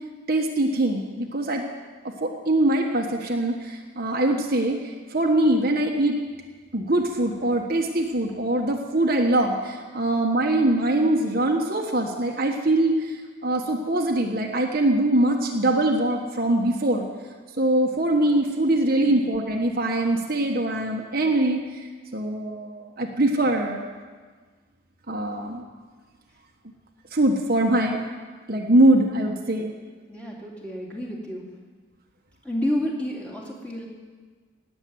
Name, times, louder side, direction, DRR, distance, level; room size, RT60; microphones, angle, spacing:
voice 1, 0.3-1.6 2.0-6.2 6.7-17.1 17.6-21.6 22.1-23.8 25.1-25.6 27.1-28.0 28.5-29.7, right 1 dB, 45° right, 1 dB, 1.4 m, -23 dB
voice 2, 30.1-31.5 32.4-33.9, equal, 5° left, -3 dB, 2.6 m, -30 dB
18.0 x 7.7 x 9.5 m, 1.5 s
head